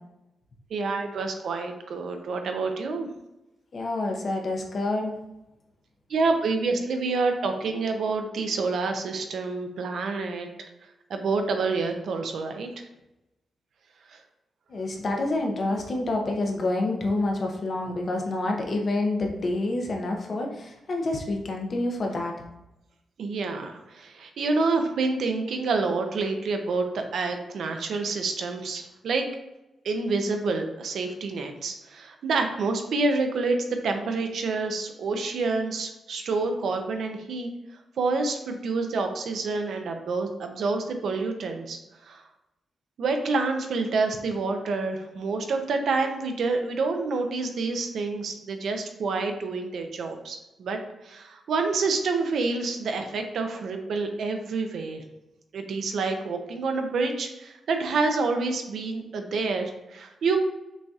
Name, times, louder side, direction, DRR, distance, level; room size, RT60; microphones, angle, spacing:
voice 1, 0.7-3.1 6.1-10.5 11.1-12.7 14.1-14.2 23.2-29.2 29.8-33.6 33.8-37.5 38.0-41.8 42.1-42.2 43.0-50.8 51.0-55.0 55.5-60.4, right 3 dB, 65° right, 5 dB, 0.5 m, -28 dB
voice 2, 3.7-5.1 14.7-22.3, left 2 dB, 40° left, 1 dB, 0.6 m, -28 dB
6.1 x 2.7 x 2.3 m, 0.92 s
wide cardioid pair, 165°, 0 cm